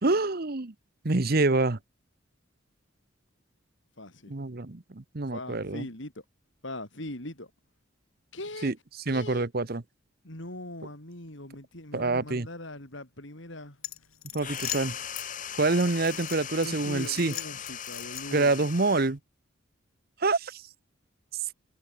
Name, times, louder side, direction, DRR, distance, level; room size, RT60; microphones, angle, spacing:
voice 1, 0.0-0.7 1.0-1.8 4.3-5.9 8.6-8.7 9.1-9.8 11.9-12.5 14.3-14.9 15.6-17.3 18.3-19.2 20.2-20.6, right 3 dB, 45° right, 1.0 m, -26 dB
voice 2, 4.0-4.3 5.3-6.2 6.6-7.5 8.3-8.7 9.1-9.5 10.2-13.8 14.3-14.9 16.6-18.6, left 1 dB, 60° left, 4.5 m, -41 dB
sound 1, 13.8-15.3 15.8-16.7 17.0-18.5, left 13 dB, 85° left, 6.2 m, -39 dB
sound 2, 14.4-19.2, left 8 dB, 40° left, 3.3 m, -39 dB
head